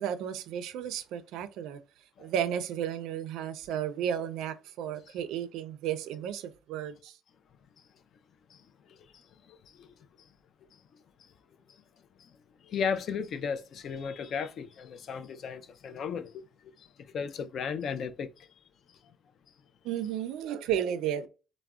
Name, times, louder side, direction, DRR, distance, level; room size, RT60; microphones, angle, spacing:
voice 1, 0.0-1.8 2.2-7.2 19.8-21.3, right 9 dB, 70° right, 0.3 m, -33 dB
voice 2, 8.5-9.9 11.2-11.3 12.2-12.4 12.6-16.5 16.8-18.5, left 6 dB, 40° left, 0.3 m, -36 dB
3.5 x 2.0 x 2.3 m
cardioid pair, 175°, 0 cm